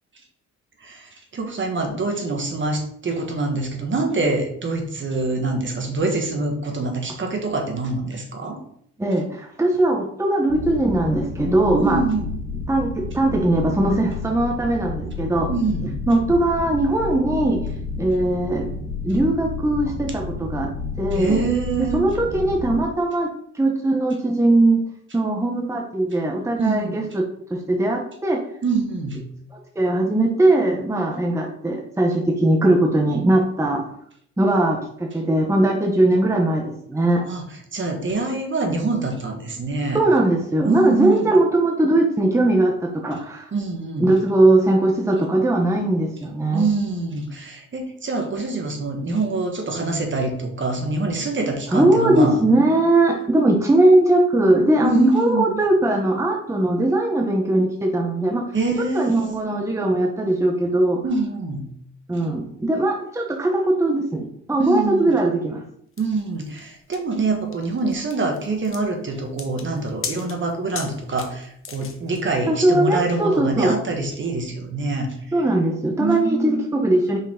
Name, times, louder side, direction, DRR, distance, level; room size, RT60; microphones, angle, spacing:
voice 1, 0.8-8.6 11.7-12.3 15.5-16.0 21.1-22.0 26.6-27.0 28.6-29.2 37.2-40.0 40.6-41.3 43.5-44.1 46.5-52.4 54.8-55.5 58.5-59.3 61.0-61.6 62.1-62.4 64.6-65.1 66.0-75.1 76.0-76.6, right 3 dB, 40° right, 3 dB, 1.5 m, -25 dB
voice 2, 9.0-12.0 12.7-15.5 16.1-17.6 18.0-18.7 19.0-20.7 21.0-21.4 21.9-24.8 25.1-28.4 29.5-33.8 34.4-37.2 39.9-43.5 44.0-46.7 51.7-58.4 58.9-61.0 62.1-65.6 72.5-73.8 75.3-77.2, right 1 dB, 10° right, 1 dB, 0.8 m, -20 dB
sound 1, 10.5-22.8, left 3 dB, 85° right, 1.7 m, -31 dB
sound 2, 66.0-72.2, left 6 dB, 45° left, 1.0 m, -37 dB
5.5 x 4.8 x 3.7 m, 0.68 s
cardioid pair, 90°, 30 cm